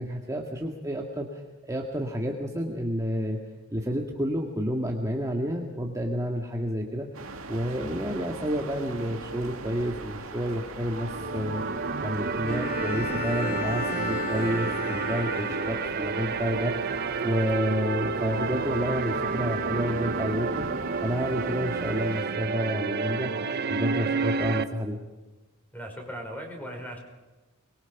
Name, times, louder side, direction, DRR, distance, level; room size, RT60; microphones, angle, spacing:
voice 1, 0.0-3.4 3.7-7.1 7.5-11.6 12.0-16.7 17.2-20.7 21.0-23.3 23.7-25.0, equal, 15° right, 0 dB, 1.9 m, -30 dB
sound 1, 7.1-22.3, right 3 dB, 85° right, 2.3 m, -41 dB
sound 2, 10.9-24.6, right 4 dB, 50° right, 1.0 m, -30 dB
Bowed string instrument, 12.5-16.2, left 4 dB, 50° left, 2.8 m, -35 dB
voice 2, 25.7-27.0, equal, 10° left, 2 dB, 5.4 m, -38 dB
24.5 x 22.5 x 6.0 m, 1.2 s
head